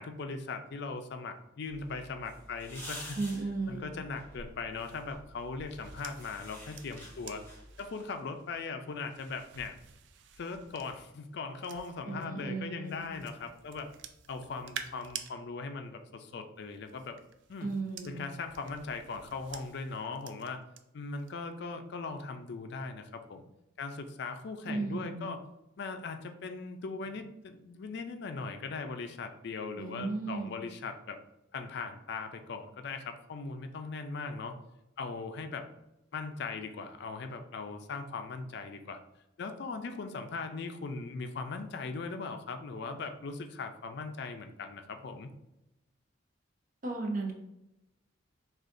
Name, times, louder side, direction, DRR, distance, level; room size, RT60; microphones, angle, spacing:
voice 1, 0.0-3.2 3.7-7.5 7.8-9.8 10.4-13.9 14.3-17.2 17.5-17.7 18.0-20.6 20.9-23.4 23.8-25.4 25.8-31.2 31.5-34.5 35.0-35.6 36.1-39.0 39.4-45.3, left 4 dB, 60° left, 7 dB, 0.4 m, -39 dB
sound 1, 1.7-7.9, left 1 dB, 10° left, 1.1 m, -49 dB
voice 2, 3.1-3.8 12.1-13.1 17.6-18.2 24.7-25.3 29.8-30.5 46.8-47.3, right 3 dB, 45° right, 1 dB, 0.8 m, -35 dB
sound 2, 4.7-12.3 12.8-15.3 16.6-20.8 21.2-21.5, right 8 dB, 65° right, 0.4 m, -50 dB
6.3 x 2.4 x 2.5 m, 0.90 s
head